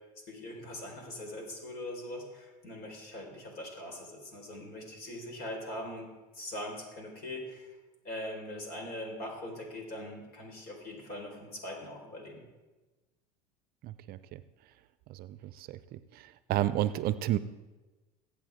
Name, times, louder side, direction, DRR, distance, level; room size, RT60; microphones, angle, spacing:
voice 1, 0.3-6.1 6.3-7.8 8.0-12.4, left 1 dB, 50° left, 1 dB, 4.7 m, -41 dB
voice 2, 13.8-14.4 15.1-16.0 16.5-17.4, right 13 dB, 50° right, 14 dB, 0.6 m, -31 dB
22.0 x 8.4 x 3.7 m, 1.2 s
hypercardioid pair, 80°, 20 cm